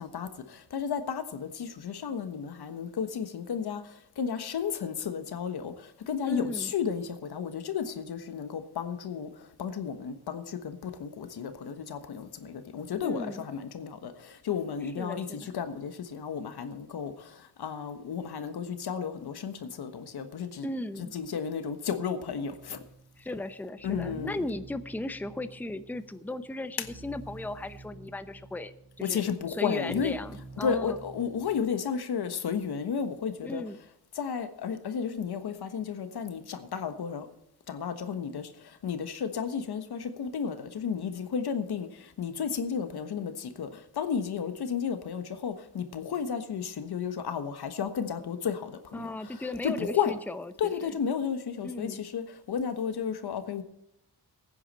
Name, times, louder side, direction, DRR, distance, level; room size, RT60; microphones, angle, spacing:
voice 1, 0.0-3.8 4.2-5.7 6.1-9.3 9.6-17.3 17.6-20.7 21.0-22.8 23.8-24.4 29.0-30.1 30.6-33.6 34.1-37.3 37.7-38.5 38.8-41.9 42.2-50.1 50.6-53.6, left 7 dB, 80° left, 1.3 m, -33 dB
voice 2, 6.2-6.7 13.0-13.5 15.0-15.5 20.6-21.1 23.2-31.0 33.4-33.8 48.9-50.7 51.6-52.0, left 2 dB, 5° left, 0.7 m, -36 dB
sound 1, 22.4-31.6, right 3 dB, 70° right, 4.4 m, -49 dB
16.0 x 9.5 x 4.2 m
cardioid pair, 85°, 38 cm